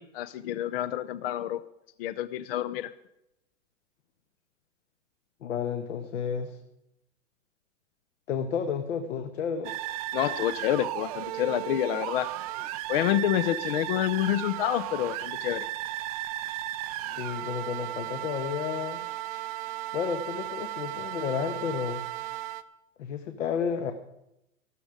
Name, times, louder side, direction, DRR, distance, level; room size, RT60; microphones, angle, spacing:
voice 1, 0.0-1.6 2.0-2.9 10.1-12.3 12.9-15.7, left 12 dB, 45° left, 14 dB, 0.6 m, -28 dB
voice 2, 5.4-6.6 8.3-9.7 17.2-19.0 19.9-22.0 23.0-23.9, left 7 dB, 65° left, 7 dB, 1.4 m, -31 dB
sound 1, 9.6-22.6, right 15 dB, 30° right, 0.5 m, -35 dB
14.5 x 13.0 x 5.0 m, 0.84 s
hypercardioid pair, 145°, 40 cm